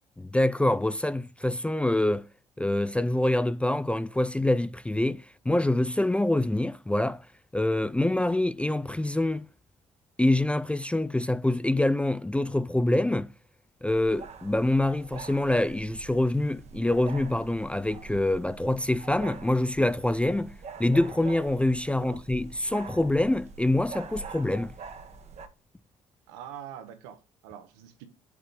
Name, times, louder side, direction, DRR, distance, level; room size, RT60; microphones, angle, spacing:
voice 1, 0.2-2.3 2.6-7.2 7.5-9.5 10.2-13.3 13.8-20.5 20.8-24.7, left 1 dB, 10° left, 0.3 m, -25 dB
sound 1, 13.9-25.5, right 5 dB, 45° right, 1.0 m, -45 dB
voice 2, 26.3-28.1, right 9 dB, 85° right, 1.1 m, -44 dB
6.5 x 3.2 x 5.3 m
hypercardioid pair, 60°, 15 cm